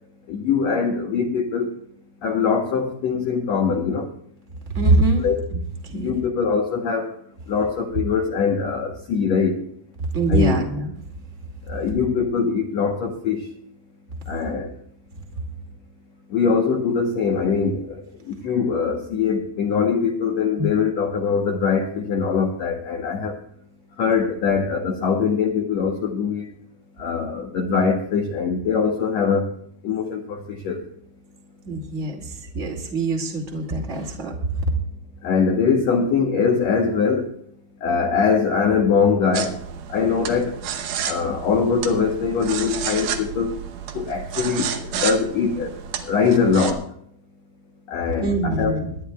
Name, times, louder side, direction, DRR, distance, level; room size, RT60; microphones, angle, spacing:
voice 1, 0.3-1.7 2.2-4.1 5.2-5.4 5.9-7.1 7.5-9.6 10.3-10.7 11.7-13.4 14.3-14.7 16.3-18.0 18.3-23.4 24.0-26.5 27.0-29.5 29.8-30.8 35.2-37.3 37.8-39.5 39.9-40.6 41.1-43.5 43.9-45.7 46.1-46.8 47.9-48.8, left 5 dB, 70° left, 2 dB, 1.7 m, -22 dB
voice 2, 4.7-5.2 5.5-6.2 10.1-10.9 20.6-20.7 31.6-34.7 48.2-48.9, right 2 dB, 25° right, 1 dB, 1.8 m, -23 dB
sound 1, 39.3-46.7, right 8 dB, 85° right, 1.5 m, -31 dB
26.5 x 11.5 x 2.3 m, 0.67 s
omnidirectional pair, 4.5 m